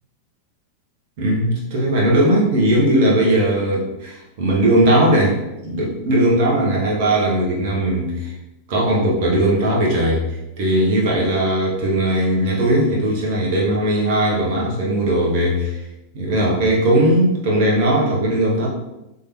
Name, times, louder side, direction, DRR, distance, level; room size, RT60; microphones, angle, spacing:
voice 1, 1.2-8.3 8.7-15.8 16.1-18.7, right 1 dB, 50° right, -3 dB, 1.3 m, -18 dB
5.3 x 3.5 x 2.8 m, 0.93 s
figure-of-eight pair, 90°, 0 cm